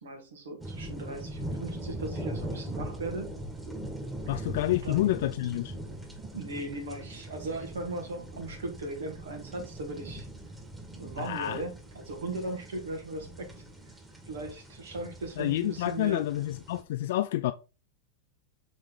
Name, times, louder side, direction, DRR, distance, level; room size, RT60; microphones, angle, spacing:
voice 1, 0.0-3.3 4.3-4.5 4.8-5.0 6.3-10.3 11.0-13.5 14.3-16.2, right 2 dB, 80° right, 2.4 m, -38 dB
sound 1, 0.6-16.8, right 1 dB, 10° right, 1.7 m, -41 dB
voice 2, 4.3-5.7 11.2-11.6 15.4-17.5, left 14 dB, 65° left, 0.4 m, -29 dB
6.3 x 4.2 x 4.0 m
hypercardioid pair, 115°, 0 cm